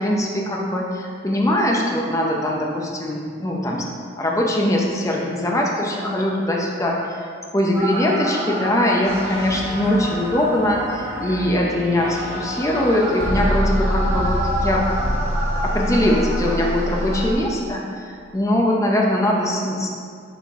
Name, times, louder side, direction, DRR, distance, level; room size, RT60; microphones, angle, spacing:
voice 1, 0.0-3.9 4.2-7.3 7.5-14.9 15.6-19.9, left 1 dB, 15° left, -1 dB, 0.6 m, -21 dB
sound 1, 7.7-17.3, equal, 15° right, 1.1 m, -25 dB
7.3 x 4.3 x 3.5 m, 2.1 s
head